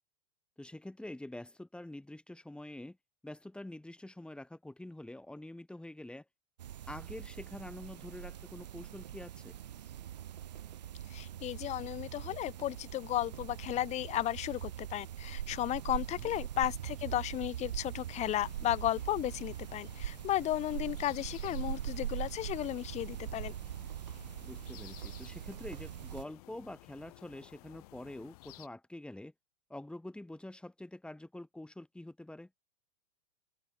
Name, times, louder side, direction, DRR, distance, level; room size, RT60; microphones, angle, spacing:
voice 1, 0.6-3.0 3.2-6.3 6.9-9.5 16.2-16.3 24.4-29.3 29.7-32.5, left 1 dB, 5° left, 5.3 m, -46 dB
sound 1, 6.6-26.2, right 11 dB, 85° right, 1.5 m, -42 dB
voice 2, 11.1-23.5, left 13 dB, 35° left, 0.9 m, -34 dB
sound 2, 18.1-28.7, left 21 dB, 65° left, 5.9 m, -56 dB
hypercardioid pair, 105°, 21 cm